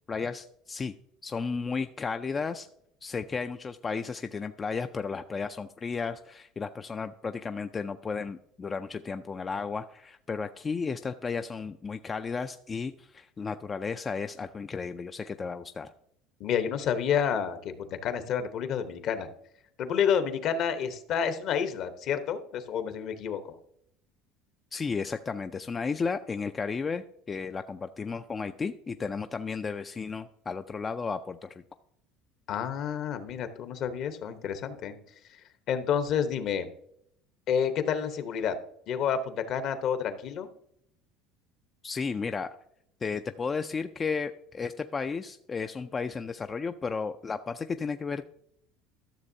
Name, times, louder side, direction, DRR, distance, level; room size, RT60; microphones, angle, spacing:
voice 1, 0.1-0.9 1.2-2.7 3.0-15.9 24.7-31.6 41.8-42.5 43.0-48.3, left 5 dB, 25° left, 8 dB, 0.3 m, -33 dB
voice 2, 16.4-19.3 19.8-23.6 32.5-34.9 35.3-35.4 35.7-36.7 37.5-38.6 38.9-40.5, left 8 dB, 55° left, 9 dB, 0.9 m, -29 dB
13.0 x 6.7 x 2.7 m, 0.73 s
supercardioid pair, 105°, 0 cm